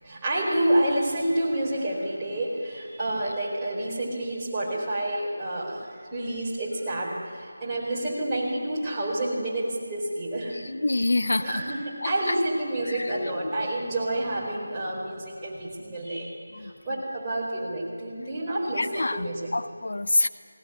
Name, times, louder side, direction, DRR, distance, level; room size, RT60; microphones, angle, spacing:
voice 1, 0.0-10.6 11.4-19.5, right 1 dB, 10° right, -8 dB, 4.6 m, -29 dB
voice 2, 10.5-11.6 12.0-12.4 12.9-13.7 16.5-16.7 18.8-20.3, left 2 dB, 65° left, 12 dB, 0.7 m, -27 dB
19.5 x 18.0 x 9.7 m, 2.1 s
figure-of-eight pair, 165°, 0 cm